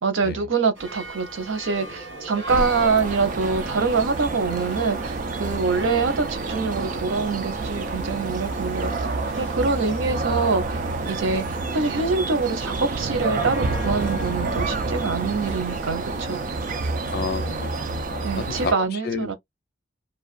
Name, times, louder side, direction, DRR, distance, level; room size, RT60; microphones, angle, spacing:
voice 1, 0.0-8.9 9.4-11.5 11.7-16.4 18.2-19.3, right 4 dB, 80° right, 0.7 m, -25 dB
sound 1, 0.7-18.0, right 1 dB, 65° right, 1.4 m, -41 dB
sound 2, 2.5-18.7, right 3 dB, 40° right, 0.3 m, -28 dB
voice 2, 17.1-19.3, left 4 dB, 50° left, 0.4 m, -31 dB
2.4 x 2.1 x 2.4 m
head